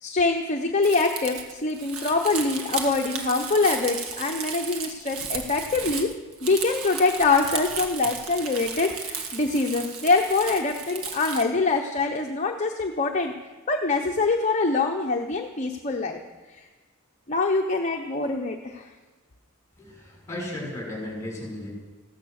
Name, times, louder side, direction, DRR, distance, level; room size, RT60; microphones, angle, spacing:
voice 1, 0.0-6.1 6.4-13.3 13.7-16.2 16.5-16.6 17.3-18.9, left 3 dB, 35° left, 2 dB, 0.9 m, -24 dB
Crumpling crinkling, 0.8-11.4, right 5 dB, 75° right, 1.7 m, -34 dB
voice 2, 19.8-21.7, left 1 dB, 15° left, -2 dB, 6.3 m, -35 dB
15.5 x 14.0 x 6.5 m, 1.3 s
head